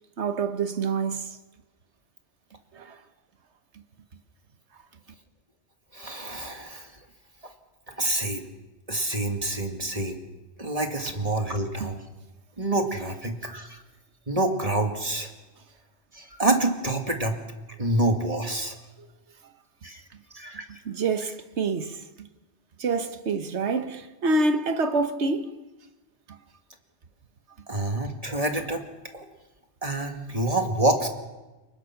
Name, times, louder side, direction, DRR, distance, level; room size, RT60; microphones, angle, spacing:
voice 1, 0.2-1.4 2.7-3.0 11.8-11.9 20.8-22.3 22.8-25.6 26.3-26.4, right 3 dB, 85° right, 1.5 m, -27 dB
voice 2, 5.9-6.9 7.9-8.4 8.9-10.2 10.6-12.0 12.6-13.8 14.3-15.3 16.1-17.4 17.8-18.8 19.8-20.0 20.3-20.7 27.7-28.8 29.1-29.3 29.8-31.1, right 2 dB, 35° right, 2.2 m, -27 dB
30.0 x 20.0 x 5.9 m
omnidirectional pair, 1.1 m